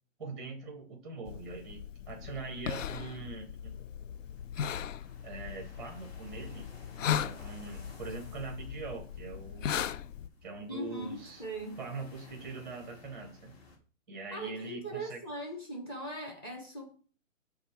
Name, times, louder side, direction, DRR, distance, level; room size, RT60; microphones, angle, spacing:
voice 1, 0.2-3.8 5.2-6.7 7.0-9.9 10.4-11.4 11.8-13.6 14.1-15.2, right 3 dB, ahead, 0.6 m, -43 dB
sound 1, 1.3-10.3, left 9 dB, 65° left, 0.5 m, -38 dB
sound 2, 4.1-13.8, left 2 dB, 50° left, 2.1 m, -56 dB
voice 2, 10.7-11.8 14.3-16.9, right 1 dB, 20° left, 0.9 m, -40 dB
5.4 x 3.5 x 5.7 m
hypercardioid pair, 160°, 40 cm